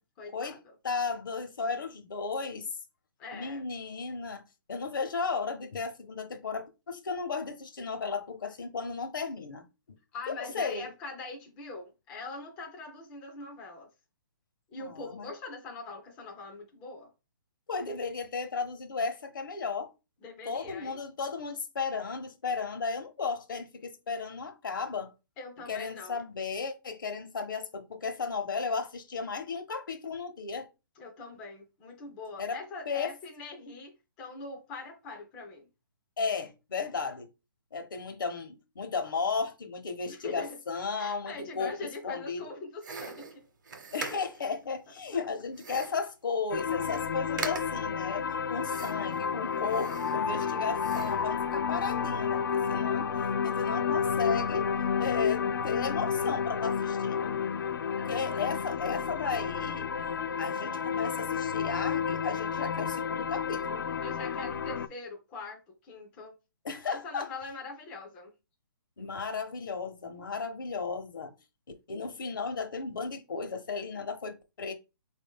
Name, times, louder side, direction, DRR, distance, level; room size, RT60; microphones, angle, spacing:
voice 1, 0.2-0.8 3.2-3.6 10.1-13.9 14.7-17.1 20.2-21.0 25.4-26.2 31.0-33.9 34.2-35.7 40.1-40.6 40.9-43.4 44.1-44.5 45.1-45.3 58.0-58.5 64.0-66.3 66.8-68.3, left 3 dB, 10° left, 0.3 m, -43 dB
voice 2, 0.8-2.7 3.3-4.4 4.7-9.7 10.3-10.9 14.8-15.3 17.7-19.9 20.5-25.1 25.7-30.7 32.4-32.6 32.9-33.1 36.2-37.3 37.7-42.5 43.9-53.1 53.4-54.7 55.0-57.4 57.9-59.9 60.4-63.8 66.6-67.3 69.0-71.3 71.9-74.7, left 5 dB, 75° left, 0.9 m, -34 dB
sound 1, 42.8-44.5 45.5-46.1 46.5-46.6 46.8-47.1 47.4-47.9 48.7-49.2 49.6-50.5 50.8-51.3, right 4 dB, 65° right, 0.8 m, -41 dB
sound 2, 46.5-64.9, left 7 dB, 90° left, 0.4 m, -31 dB
4.1 x 2.6 x 3.5 m
hypercardioid pair, 170°, 11 cm